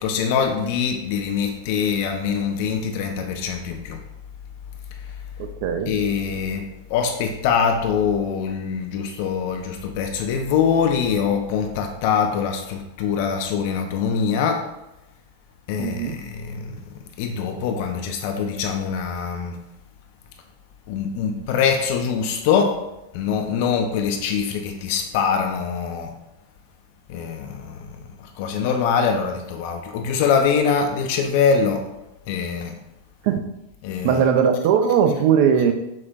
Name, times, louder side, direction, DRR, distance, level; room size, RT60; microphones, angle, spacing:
voice 1, 0.0-4.0 5.9-14.6 15.7-16.8 17.2-19.6 20.9-22.8 23.1-26.1 27.1-31.8 32.3-32.7 33.8-34.2, left 6 dB, 50° left, 4 dB, 0.4 m, -23 dB
voice 2, 5.6-5.9 15.8-16.2 33.2-33.4 34.0-35.7, right 7 dB, 45° right, 6 dB, 0.4 m, -19 dB
5.8 x 2.1 x 2.5 m, 0.91 s
figure-of-eight pair, 90°, 0 cm